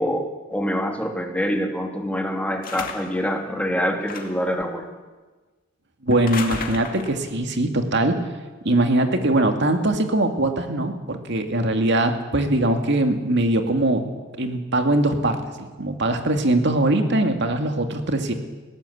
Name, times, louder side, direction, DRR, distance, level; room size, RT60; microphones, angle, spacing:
voice 1, 0.0-4.9, equal, 5° left, 3 dB, 2.5 m, -25 dB
sound 1, 2.6-3.2 4.0-4.5 6.1-7.2, left 4 dB, 45° left, 2.4 m, -33 dB
voice 2, 6.0-8.2 8.6-14.1 14.4-18.3, right 1 dB, 60° right, 6 dB, 2.4 m, -21 dB
20.5 x 17.5 x 8.7 m, 1.3 s
head